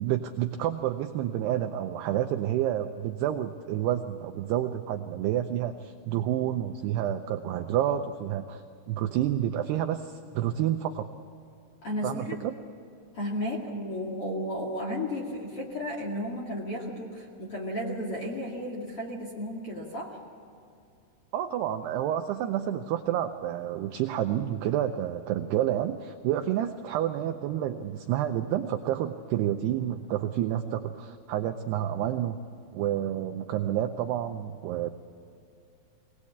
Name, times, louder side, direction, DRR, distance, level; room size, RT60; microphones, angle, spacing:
voice 1, 0.0-11.1 12.0-12.5 21.3-32.4 32.7-34.9, right 11 dB, 90° right, 7 dB, 2.3 m, -29 dB
voice 2, 11.8-12.4 13.1-20.2, left 1 dB, 45° left, -3 dB, 2.0 m, -33 dB
23.0 x 18.5 x 8.5 m, 2.5 s
omnidirectional pair, 5.6 m